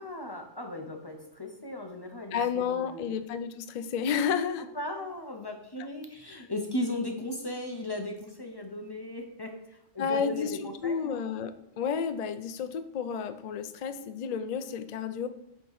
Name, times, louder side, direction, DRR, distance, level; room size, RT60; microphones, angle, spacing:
voice 1, 0.0-3.1 4.7-11.2, left 1 dB, 25° left, 3 dB, 0.6 m, -37 dB
voice 2, 2.3-4.7 6.3-6.5 10.0-10.5 10.8-15.3, left 7 dB, 85° left, 11 dB, 0.3 m, -31 dB
7.9 x 3.7 x 4.7 m, 0.83 s
omnidirectional pair, 1.3 m